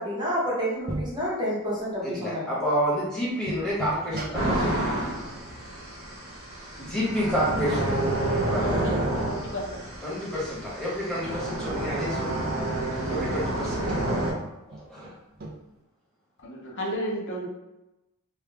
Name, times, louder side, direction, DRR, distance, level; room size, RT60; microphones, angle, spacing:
voice 1, 0.0-2.4, equal, 20° right, -6 dB, 1.0 m, -29 dB
sound 1, 0.9-1.2 1.9-2.0 2.7-2.8 3.2-4.9 6.8-7.8 8.1-8.2 8.5-8.8 10.4-11.4 14.7-15.6, right 1 dB, 45° right, 0.5 m, -37 dB
voice 2, 2.0-5.0 6.8-7.9 8.5-8.6 10.0-12.5 13.1-14.0 14.7-15.1, equal, 5° left, -9 dB, 1.4 m, -29 dB
sound 2, 4.3-14.3, right 1 dB, 75° right, 1.2 m, -29 dB
voice 3, 8.6-8.9 9.2-9.8 16.4-17.5, equal, 60° left, -1 dB, 0.6 m, -33 dB
3.2 x 2.4 x 3.4 m, 0.96 s
head